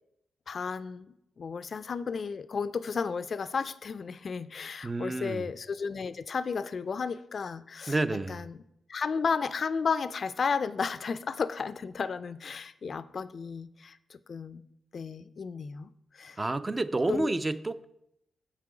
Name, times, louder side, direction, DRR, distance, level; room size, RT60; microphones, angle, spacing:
voice 1, 0.5-7.9 8.3-8.6 8.9-14.6 14.9-16.4 17.1-17.3, left 5 dB, 55° left, 14 dB, 0.4 m, -33 dB
voice 2, 4.8-5.5 7.9-8.5 16.4-17.9, right 2 dB, 25° right, 12 dB, 0.4 m, -30 dB
7.2 x 5.8 x 4.9 m, 0.79 s
cardioid pair, 70°, 0 cm